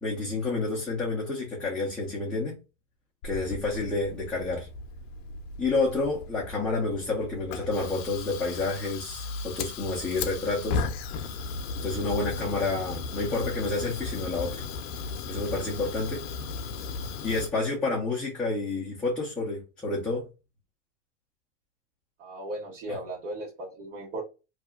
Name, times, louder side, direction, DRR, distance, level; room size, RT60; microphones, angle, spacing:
voice 1, 0.0-2.6 3.2-4.7 5.6-10.8 11.8-14.7 15.3-16.2 17.2-20.3 22.9-23.0, left 3 dB, 5° left, 0.4 m, -29 dB
Fire, 3.2-17.5, left 4 dB, 55° left, 0.6 m, -36 dB
voice 2, 22.2-24.2, right 1 dB, 80° right, 1.4 m, -36 dB
2.7 x 2.4 x 2.2 m
supercardioid pair, 140°, 37 cm